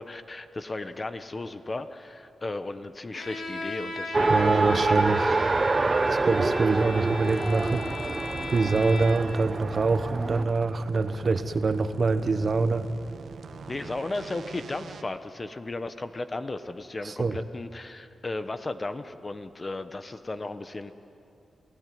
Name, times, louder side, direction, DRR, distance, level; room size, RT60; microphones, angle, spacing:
voice 1, 0.0-5.4 13.7-20.9, left 2 dB, 30° left, 10 dB, 1.0 m, -35 dB
Bowed string instrument, 3.1-9.4, left 2 dB, 80° left, 3.4 m, -37 dB
Race car auto racing, 4.1-10.4, right 3 dB, 30° right, 0.6 m, -26 dB
voice 2, 4.3-5.4 6.1-7.8 8.5-12.9 17.0-17.4, right 3 dB, 45° right, 11 dB, 1.0 m, -25 dB
sound 1, 7.2-15.0, right 5 dB, 75° right, 1.1 m, -43 dB
28.0 x 16.5 x 9.4 m, 2.8 s
wide cardioid pair, 115°, 0 cm